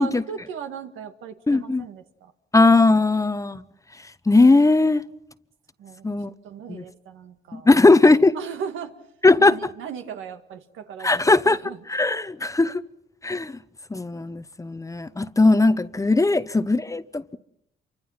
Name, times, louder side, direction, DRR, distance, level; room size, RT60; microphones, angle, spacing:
voice 1, 0.0-2.3 5.8-6.1 6.4-7.7 8.3-9.0 9.4-11.8 16.3-16.4, right 7 dB, 80° right, 2.1 m, -37 dB
voice 2, 1.5-1.8 2.5-3.6 4.3-5.0 6.0-6.3 6.7-6.8 7.5-8.4 9.2-9.6 11.0-11.6 11.9-12.8 13.2-13.6 13.9-17.4, left 3 dB, 15° left, 0.9 m, -18 dB
28.0 x 24.5 x 5.8 m
cardioid pair, 90°, 20 cm